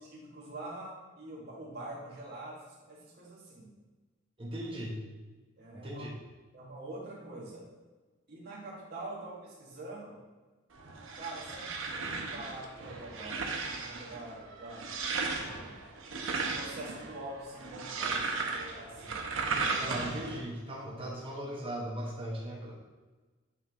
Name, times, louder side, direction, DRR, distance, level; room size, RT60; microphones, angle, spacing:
voice 1, 0.1-3.7 5.6-6.0 6.5-7.6 8.3-10.2 11.1-14.9 15.5-15.8 16.4-19.2, right 2 dB, 50° right, -6 dB, 1.7 m, -45 dB
voice 2, 4.4-5.0 5.7-6.1 19.0-19.1 19.7-22.8, right 1 dB, 25° right, -5 dB, 1.0 m, -38 dB
sound 1, 10.7-20.4, right 4 dB, 75° right, 0.8 m, -36 dB
8.5 x 3.5 x 3.5 m, 1.3 s
head